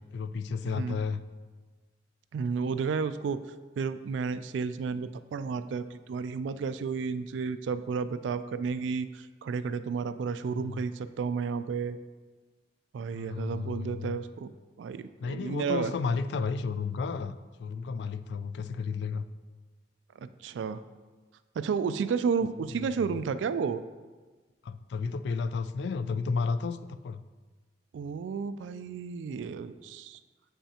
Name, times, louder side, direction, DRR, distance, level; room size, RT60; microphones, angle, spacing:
voice 1, 0.1-1.2 10.5-10.8 13.1-14.2 15.2-19.2 24.6-27.2, left 5 dB, 65° left, 13 dB, 0.3 m, -32 dB
voice 2, 0.6-1.0 2.3-3.4 3.8-12.0 12.9-14.5 14.8-15.9 20.2-20.8 21.6-23.8 27.9-30.2, right 5 dB, 85° right, 12 dB, 0.3 m, -32 dB
7.5 x 5.5 x 2.9 m, 1.3 s
head